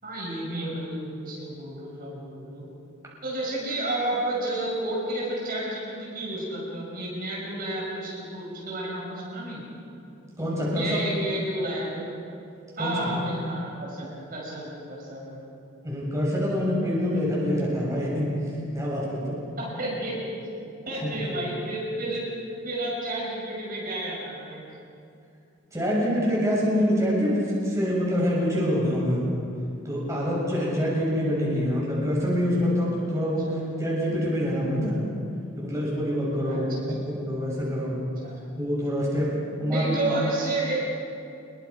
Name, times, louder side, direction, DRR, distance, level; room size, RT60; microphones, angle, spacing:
voice 1, 0.0-2.6 3.2-9.6 10.6-12.1 12.8-15.5 19.6-20.2 20.9-22.3 22.6-24.6 33.4-33.5 36.4-37.1 38.2-38.4 39.7-40.8, right 1 dB, 40° right, -5 dB, 6.0 m, -31 dB
voice 2, 10.4-10.9 12.8-13.0 15.8-18.4 18.7-19.4 21.0-21.3 25.7-29.2 29.8-33.5 33.8-35.0 35.6-38.0 38.6-39.3 39.6-39.9, equal, 15° right, -6 dB, 6.8 m, -25 dB
27.5 x 22.5 x 5.4 m, 2.6 s
head